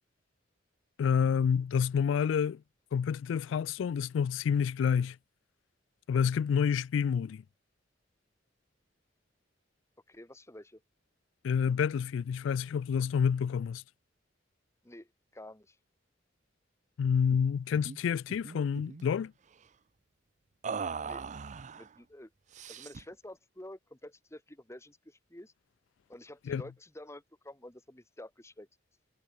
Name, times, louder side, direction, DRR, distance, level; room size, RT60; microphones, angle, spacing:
voice 1, 1.0-2.6 2.9-5.2 6.1-7.4 11.4-13.8 17.0-19.3 26.5-26.6, left 7 dB, 85° left, 0.3 m, -28 dB
voice 2, 10.1-10.8 14.8-15.8 21.0-21.3 21.7-22.3 22.7-25.5 26.1-28.7, left 1 dB, 15° left, 2.1 m, -49 dB
sound 1, 17.3-17.5 17.7-18.0 18.3-19.1 20.6-21.9 22.5-23.1, right 5 dB, 40° right, 0.5 m, -39 dB
head